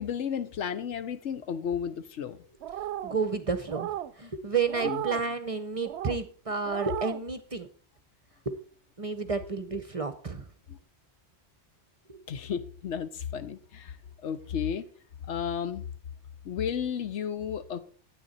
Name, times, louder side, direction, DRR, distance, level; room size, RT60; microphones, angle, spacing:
voice 1, 0.0-2.4 4.8-5.0 10.7-10.8 12.3-14.0 14.2-14.8 15.3-15.9 16.4-17.8, left 8 dB, 75° left, 1.1 m, -33 dB
sound 1, 2.6-3.2 3.7-4.1 4.7-5.2 5.8-6.2 6.6-7.2, right 11 dB, 70° right, 0.8 m, -35 dB
voice 2, 2.9-7.7 8.5-8.6 9.0-10.5 12.1-12.2, right 5 dB, 35° right, 0.7 m, -31 dB
9.3 x 9.2 x 4.1 m
omnidirectional pair, 1.2 m